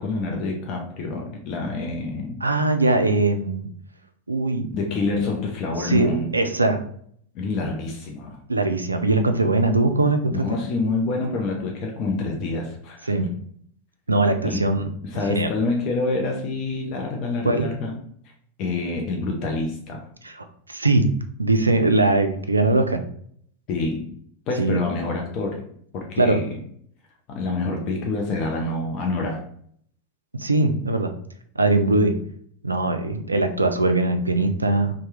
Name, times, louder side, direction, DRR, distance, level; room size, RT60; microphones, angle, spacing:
voice 1, 0.0-2.4 4.7-6.3 7.3-8.4 10.3-13.3 14.4-14.6 15.0-17.9 18.6-20.1 23.7-24.1 24.5-25.6 25.9-26.6 27.3-29.4, left 3 dB, 40° left, 0 dB, 0.5 m, -27 dB
voice 2, 2.4-3.7 4.3-4.7 5.8-6.8 8.5-10.4 13.1-13.3 14.1-14.8 15.3-15.5 17.5-17.7 20.2-21.0 21.4-23.0 24.6-24.8 26.2-26.4 30.3-31.1 31.6-32.1 32.6-34.9, right 2 dB, 80° right, 7 dB, 0.3 m, -21 dB
2.9 x 2.1 x 3.3 m, 0.64 s
figure-of-eight pair, 90°, 0 cm